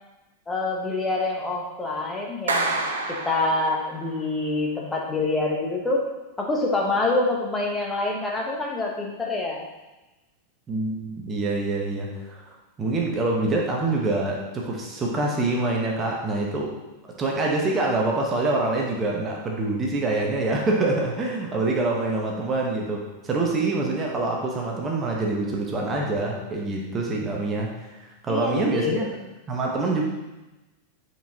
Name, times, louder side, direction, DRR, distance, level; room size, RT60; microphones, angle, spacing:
voice 1, 0.5-2.8 3.1-6.1 6.4-9.7 28.3-29.1, left 2 dB, 10° left, -2 dB, 1.2 m, -26 dB
Clapping, 2.5-4.1, right 3 dB, 70° right, 0.8 m, -28 dB
voice 2, 10.7-16.8 17.0-27.7 28.0-29.1 29.5-30.0, right 2 dB, 20° right, -1 dB, 1.2 m, -25 dB
9.0 x 4.7 x 2.9 m, 1.0 s
figure-of-eight pair, 90°, 0 cm